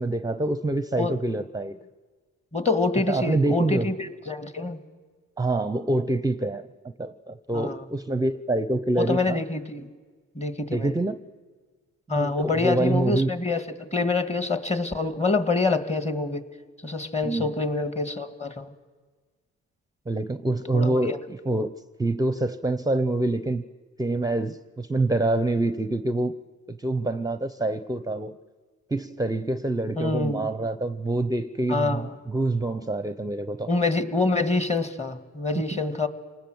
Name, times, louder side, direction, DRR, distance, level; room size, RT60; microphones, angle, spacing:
voice 1, 0.0-1.8 3.1-3.9 5.4-6.7 7.0-9.4 10.7-11.2 12.1-13.3 17.2-17.5 20.1-21.7 22.0-23.6 24.0-26.3 26.7-28.4 28.9-33.7, right 2 dB, 10° right, 12 dB, 0.7 m, -26 dB
voice 2, 2.5-4.8 7.5-7.8 9.0-9.9 10.4-10.9 12.1-16.5 16.8-18.7 20.7-21.2 30.0-30.5 31.7-32.1 33.7-36.1, left 3 dB, 20° left, 10 dB, 1.9 m, -26 dB
28.0 x 19.5 x 7.9 m, 1.5 s
cardioid pair, 90°, 30 cm